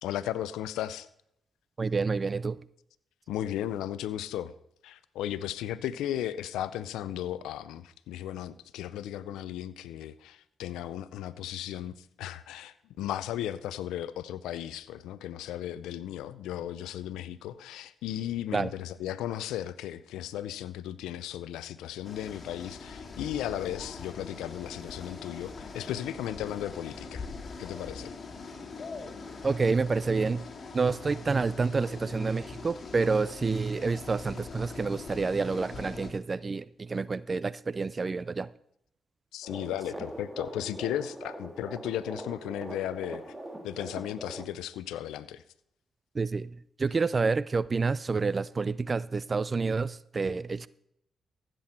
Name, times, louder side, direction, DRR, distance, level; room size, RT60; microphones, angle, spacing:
voice 1, 0.0-1.1 3.3-4.5 4.8-27.3 27.6-28.2 39.3-43.4 43.6-45.4, left 11 dB, 85° left, 0.4 m, -35 dB
voice 2, 1.8-2.7 18.5-18.7 29.4-30.5 30.7-38.5 46.1-50.7, right 4 dB, 40° right, 0.4 m, -28 dB
sound 1, 22.0-36.1, left 4 dB, 50° left, 2.5 m, -43 dB
sound 2, 39.4-44.5, right 1 dB, 20° right, 2.1 m, -42 dB
15.0 x 7.6 x 4.3 m
supercardioid pair, 50°, 0 cm